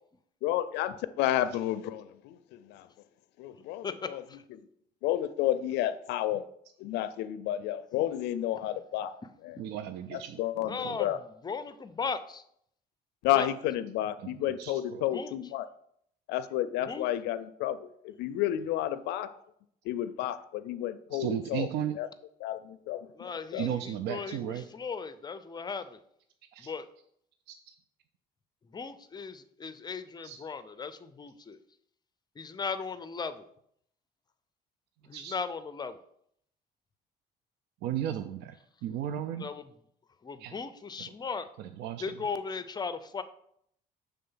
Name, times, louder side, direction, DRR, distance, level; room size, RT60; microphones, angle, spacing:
voice 1, 0.4-2.9 3.4-4.2 5.0-6.4 6.8-9.1 9.4-9.6 10.1-11.2 13.2-15.7 16.3-19.3 19.9-21.7 21.9-22.1 22.4-23.8, left 12 dB, 85° left, 13 dB, 0.4 m, -31 dB
voice 2, 3.8-4.4 10.6-11.1 11.4-12.4 13.3-13.5 15.1-15.3 16.8-17.1 23.2-26.0 26.6-26.9 28.7-31.6 32.4-33.5 35.1-36.0 39.4-39.7 40.2-41.5 42.0-43.2, left 5 dB, 25° left, 12 dB, 0.5 m, -37 dB
voice 3, 9.6-10.3 14.6-14.7 21.1-21.9 23.6-24.6 30.2-30.4 35.1-35.3 37.8-38.5 38.8-39.4 40.4-40.5 41.8-42.0, right 10 dB, 80° right, 9 dB, 0.4 m, -33 dB
6.7 x 3.5 x 5.5 m, 0.69 s
cardioid pair, 110°, 17 cm